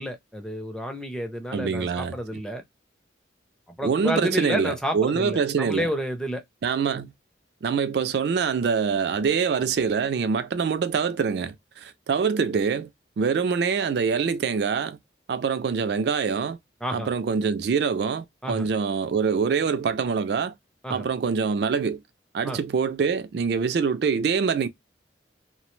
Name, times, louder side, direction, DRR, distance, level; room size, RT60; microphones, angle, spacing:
voice 1, 0.0-2.6 3.8-6.4 16.8-17.1 18.4-18.7 20.8-21.1 22.4-22.6, equal, 5° left, 0.4 m, -30 dB
voice 2, 1.5-2.2 3.8-5.9 6.6-7.1 7.6-12.9 13.2-15.0 15.3-16.6 16.9-20.5 20.9-22.0 22.3-24.7, right 6 dB, 60° right, 0.3 m, -25 dB
2.7 x 2.0 x 3.0 m
head